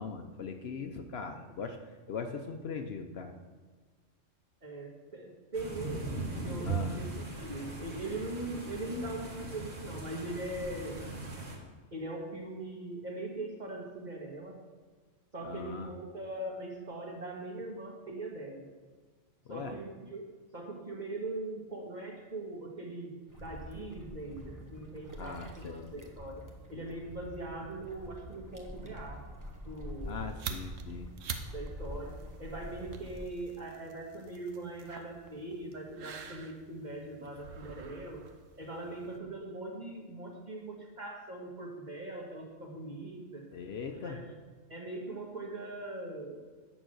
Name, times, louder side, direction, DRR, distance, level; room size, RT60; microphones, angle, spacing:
voice 1, 0.0-1.8 2.1-3.3 6.6-7.0 15.4-15.9 19.5-19.7 25.2-26.1 30.0-31.1 43.5-44.2, left 5 dB, 60° left, 6 dB, 0.9 m, -40 dB
voice 2, 4.6-11.1 11.9-14.5 15.3-18.7 19.5-29.2 29.6-30.3 31.5-38.2 38.6-43.5 43.9-44.3 44.7-46.4, right 2 dB, 35° right, -1 dB, 1.6 m, -41 dB
sound 1, 5.5-11.6, right 3 dB, 60° right, 1.8 m, -39 dB
Calm Seashore, 23.3-33.3, equal, 15° right, 1.0 m, -46 dB
sound 2, 30.0-39.2, right 6 dB, 90° right, 1.1 m, -46 dB
9.0 x 6.1 x 6.3 m, 1.4 s
omnidirectional pair, 1.3 m